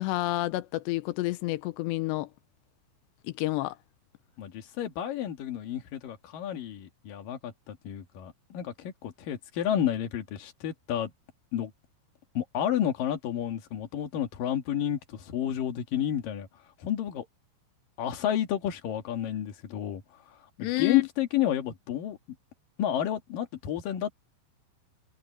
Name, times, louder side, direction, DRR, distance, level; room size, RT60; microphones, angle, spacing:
voice 1, 0.0-2.3 3.4-3.8 20.6-21.1, left 19 dB, 85° left, 2.5 m, -29 dB
voice 2, 4.4-11.1 11.5-11.7 12.3-16.5 16.8-17.3 18.0-20.0 20.3-22.2 22.8-24.1, left 10 dB, 55° left, 3.0 m, -31 dB
omnidirectional pair, 6.0 m